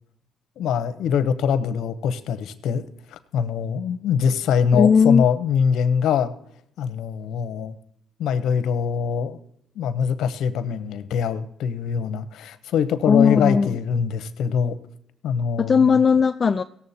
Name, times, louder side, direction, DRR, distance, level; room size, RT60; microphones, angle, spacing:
voice 1, 0.6-2.8 3.1-6.3 6.8-7.8 8.2-9.4 9.8-14.8 15.2-15.9, left 7 dB, 80° left, 13 dB, 0.8 m, -23 dB
voice 2, 4.7-5.2 13.0-13.8 15.6-16.6, left 6 dB, 40° left, 9 dB, 0.3 m, -17 dB
17.5 x 7.2 x 4.2 m, 0.70 s
cardioid pair, 90°, 0 cm